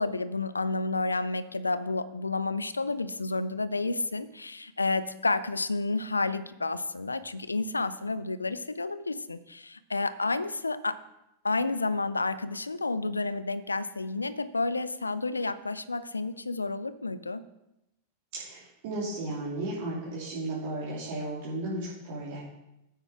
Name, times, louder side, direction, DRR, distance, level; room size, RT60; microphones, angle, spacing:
voice 1, 0.0-11.0 11.4-17.4, left 3 dB, 80° left, 15 dB, 0.5 m, -30 dB
voice 2, 18.4-22.4, right 2 dB, 50° right, -7 dB, 3.0 m, -34 dB
9.2 x 9.0 x 4.8 m, 0.89 s
figure-of-eight pair, 90°, 0 cm